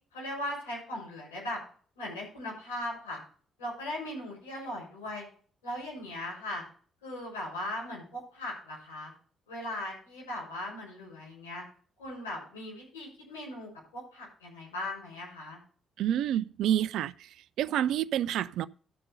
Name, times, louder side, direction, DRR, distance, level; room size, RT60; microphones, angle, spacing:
voice 1, 0.1-1.6 2.0-3.2 3.6-5.3 5.6-6.6 7.0-9.1 9.5-11.6 12.0-15.6, left 1 dB, 85° left, 6.4 m, -38 dB
voice 2, 16.0-17.3 17.6-18.7, right 11 dB, 70° right, 0.4 m, -28 dB
13.0 x 5.2 x 6.9 m
hypercardioid pair, 45°, 0 cm